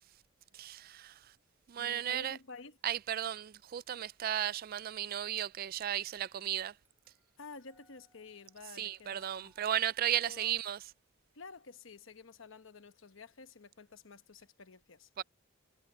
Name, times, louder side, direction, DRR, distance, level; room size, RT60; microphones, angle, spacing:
voice 1, 0.5-1.2 1.7-2.4 2.8-6.7 8.8-10.8 15.2-15.3, right 11 dB, 45° right, 0.3 m, -35 dB
voice 2, 1.8-2.8 7.4-9.5 10.2-10.5 11.3-15.1, left 4 dB, 65° left, 1.0 m, -51 dB
sound 1, 6.0-11.1, right 2 dB, 10° right, 5.2 m, -74 dB
head